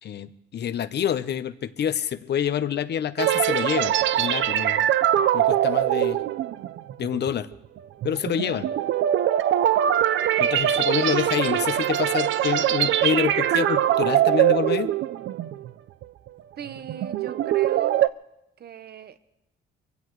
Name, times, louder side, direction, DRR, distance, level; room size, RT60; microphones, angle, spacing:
voice 1, 0.0-4.8 5.3-6.2 7.0-7.5 8.0-8.7 10.4-14.9, left 9 dB, 60° left, 12 dB, 0.9 m, -27 dB
sound 1, 3.2-15.7 16.0-16.3 16.8-18.1, right 11 dB, 70° right, 0.5 m, -22 dB
voice 2, 16.6-18.0 18.6-19.2, right 7 dB, 55° right, 11 dB, 1.1 m, -39 dB
23.5 x 16.5 x 3.2 m, 0.89 s
cardioid pair, 90°, 20 cm